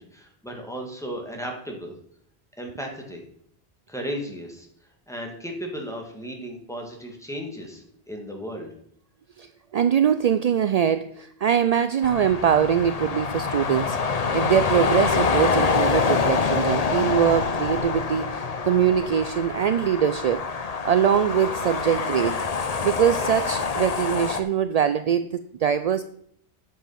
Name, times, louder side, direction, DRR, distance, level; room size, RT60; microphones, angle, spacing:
voice 1, 0.0-1.9 2.6-3.2 3.9-4.7 5.1-8.7, equal, 5° left, 0 dB, 2.1 m, -35 dB
voice 2, 9.4-20.5 20.8-22.4 22.8-26.0, right 8 dB, 60° right, 12 dB, 0.4 m, -23 dB
sound 1, 12.0-24.4, left 5 dB, 40° left, 0.8 m, -26 dB
10.0 x 7.2 x 5.7 m, 0.66 s
omnidirectional pair, 1.1 m